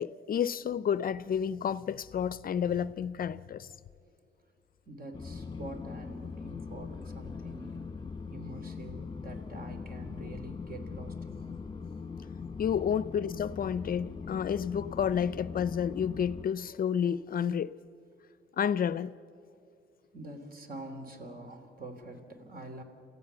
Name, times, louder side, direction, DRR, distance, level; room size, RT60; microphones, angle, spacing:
voice 1, 0.0-3.7 12.6-17.7 18.6-19.1, left 8 dB, 45° left, 0.5 m, -30 dB
voice 2, 4.9-7.9 8.3-11.5 20.1-22.8, right 1 dB, 45° right, 3.1 m, -45 dB
sound 1, 5.1-16.5, left 5 dB, 20° left, 1.3 m, -41 dB
28.0 x 15.5 x 6.9 m
cardioid pair, 90°, 20 cm